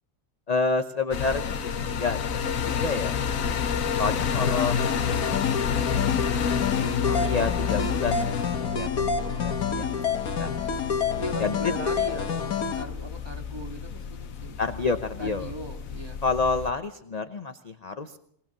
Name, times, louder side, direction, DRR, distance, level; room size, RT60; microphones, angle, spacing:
voice 1, 0.5-2.2 2.6-3.2 4.0-6.3 6.7-8.3 8.6-9.9 10.4-10.6 11.4-11.7 14.6-15.5 16.2-18.2, left 4 dB, 35° left, 8 dB, 0.8 m, -29 dB
sound 1, 1.1-16.7, left 7 dB, 70° left, 1.4 m, -29 dB
voice 2, 3.3-3.7 11.1-14.6 15.2-16.2, equal, 15° right, 2 dB, 2.1 m, -38 dB
sound 2, 4.4-12.8, left 6 dB, 85° left, 1.8 m, -29 dB
22.5 x 19.0 x 6.1 m, 0.69 s
omnidirectional pair, 1.5 m